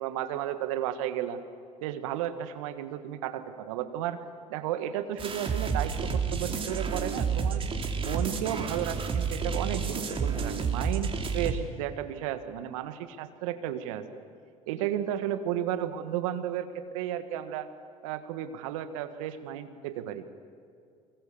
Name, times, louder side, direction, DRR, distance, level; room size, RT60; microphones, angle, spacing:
voice 1, 0.0-1.4 1.8-4.2 4.5-7.6 8.0-14.0 14.7-17.7 18.0-20.3, right 11 dB, 75° right, 11 dB, 1.5 m, -33 dB
sound 1, 5.2-11.5, right 5 dB, 30° right, 2.9 m, -30 dB
24.5 x 22.0 x 7.1 m, 2.3 s
hypercardioid pair, 70°, 17 cm